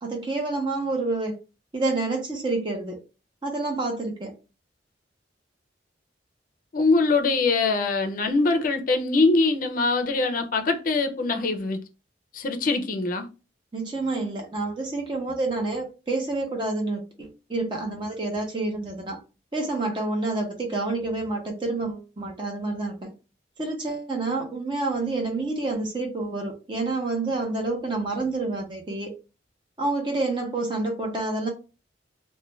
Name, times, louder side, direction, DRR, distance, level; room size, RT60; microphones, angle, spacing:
voice 1, 0.0-1.4 1.7-3.0 3.4-4.3 13.7-19.2 19.5-23.1 23.6-29.1 29.8-31.5, right 2 dB, 25° right, 0.8 m, -28 dB
voice 2, 6.7-11.8 12.3-13.3, left 3 dB, 45° left, 0.5 m, -23 dB
2.4 x 2.1 x 3.1 m
head